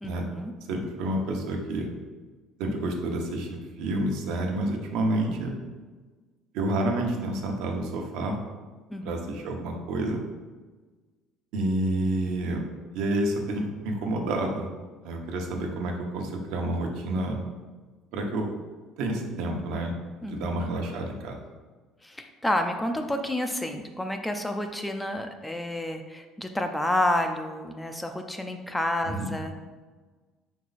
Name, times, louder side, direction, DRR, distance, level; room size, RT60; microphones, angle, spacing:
voice 1, 0.0-0.5 8.9-9.3 20.2-20.5 22.0-29.6, left 1 dB, 5° left, 5 dB, 0.4 m, -30 dB
voice 2, 0.7-1.9 2.6-5.5 6.5-8.4 9.0-10.2 11.5-12.6 12.9-14.7 15.0-17.4 18.1-18.4 19.0-19.9 20.2-21.4 29.1-29.3, right 1 dB, 75° right, 1 dB, 1.0 m, -29 dB
5.3 x 4.6 x 4.1 m, 1.3 s
cardioid pair, 145°, 0 cm